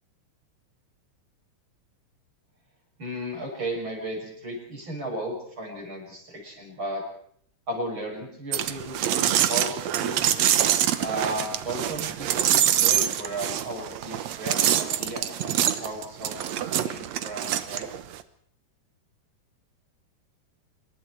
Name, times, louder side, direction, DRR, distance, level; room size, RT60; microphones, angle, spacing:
voice 1, 3.0-7.0 7.7-10.2 11.0-17.9, right 1 dB, 30° right, 0 dB, 7.1 m, -35 dB
sound 1, 8.5-18.2, right 11 dB, 85° right, 1.5 m, -25 dB
26.5 x 22.5 x 4.7 m, 0.63 s
omnidirectional pair, 4.7 m